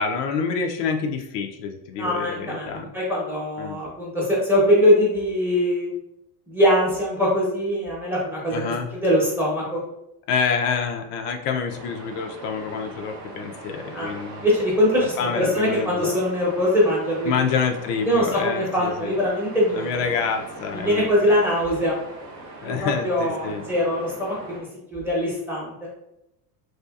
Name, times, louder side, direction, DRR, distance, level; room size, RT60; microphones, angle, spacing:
voice 1, 0.0-2.9 3.6-3.8 8.5-8.9 10.3-14.5 15.2-16.2 17.2-19.1 19.7-21.4 21.7-21.8 22.6-23.7, left 5 dB, 75° left, 4 dB, 0.6 m, -27 dB
voice 2, 1.9-5.9 6.5-8.6 8.9-9.8 13.9-14.1 14.4-17.5 18.1-20.1 20.7-22.0 22.6-25.7, equal, 5° right, -5 dB, 0.8 m, -22 dB
sound 1, 11.7-24.6, right 2 dB, 40° right, 0.8 m, -41 dB
2.7 x 2.4 x 2.3 m, 0.85 s
supercardioid pair, 125°, 48 cm